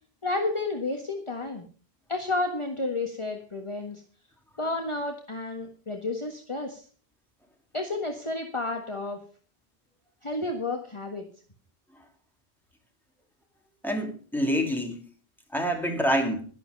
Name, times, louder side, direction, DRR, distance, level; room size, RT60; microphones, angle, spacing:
voice 1, 0.2-1.6 2.1-4.0 4.6-6.8 7.7-9.2 10.2-11.2, left 2 dB, 30° left, 3 dB, 1.6 m, -31 dB
voice 2, 13.8-15.0 15.5-16.4, equal, ahead, 2 dB, 3.1 m, -26 dB
11.5 x 11.5 x 5.3 m, 0.41 s
omnidirectional pair, 1.0 m